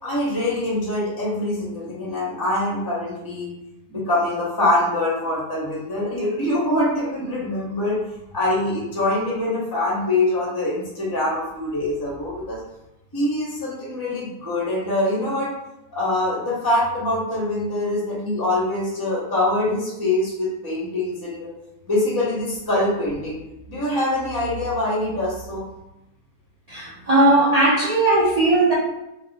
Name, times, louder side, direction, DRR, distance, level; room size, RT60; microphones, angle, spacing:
voice 1, 0.0-3.5 3.9-8.0 8.3-12.6 13.1-15.5 15.9-21.5 21.9-23.4 23.7-25.6, left 1 dB, 20° left, -6 dB, 0.6 m, -24 dB
voice 2, 26.7-28.7, right 2 dB, 45° right, -9 dB, 0.4 m, -17 dB
2.7 x 2.3 x 3.9 m, 0.90 s
omnidirectional pair, 1.8 m